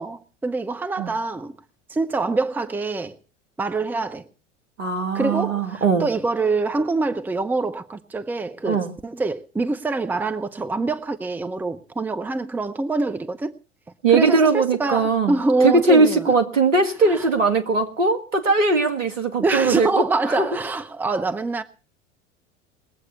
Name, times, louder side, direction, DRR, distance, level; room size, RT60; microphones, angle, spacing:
voice 1, 0.0-1.6 1.9-3.2 3.6-4.2 5.1-13.6 14.1-16.3 17.0-17.3 19.4-21.6, right 3 dB, 5° right, 0.7 m, -25 dB
voice 2, 4.8-6.1 8.7-8.9 14.0-15.4 15.6-20.0 20.4-20.5, right 3 dB, 75° right, 2.1 m, -19 dB
20.5 x 8.0 x 6.8 m
figure-of-eight pair, 80°, 38 cm